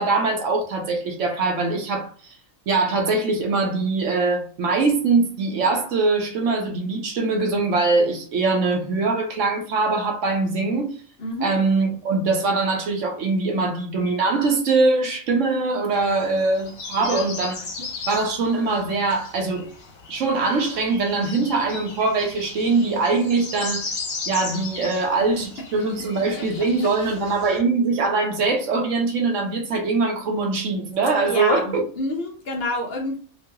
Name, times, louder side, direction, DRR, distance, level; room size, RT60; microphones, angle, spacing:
voice 1, 0.0-2.1 2.7-11.0 11.4-17.6 18.1-19.7 20.1-23.9 24.3-31.9, right 3 dB, 70° right, 1.1 m, -22 dB
voice 2, 11.2-11.5 17.0-17.3 25.3-25.5 31.2-33.2, left 1 dB, 55° left, 0.9 m, -28 dB
sound 1, 15.9-27.6, left 4 dB, 85° left, 1.3 m, -37 dB
3.0 x 2.4 x 2.8 m
omnidirectional pair, 1.4 m